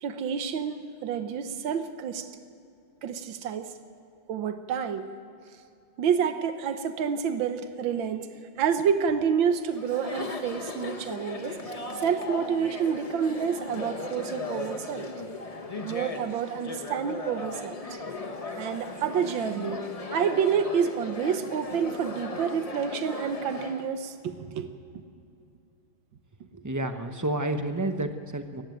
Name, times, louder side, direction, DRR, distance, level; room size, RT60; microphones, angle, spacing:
voice 1, 0.0-2.3 3.0-3.7 4.3-5.1 6.0-8.3 8.6-11.6 12.0-15.1 15.8-18.0 18.6-19.9 20.1-24.7, right 7 dB, 80° right, 9 dB, 1.8 m, -28 dB
Chatter, 9.7-23.9, left 2 dB, 25° left, 0.9 m, -37 dB
voice 2, 26.5-28.6, right 1 dB, 20° right, 7 dB, 0.4 m, -30 dB
19.0 x 15.0 x 9.2 m, 2.6 s
omnidirectional pair, 2.1 m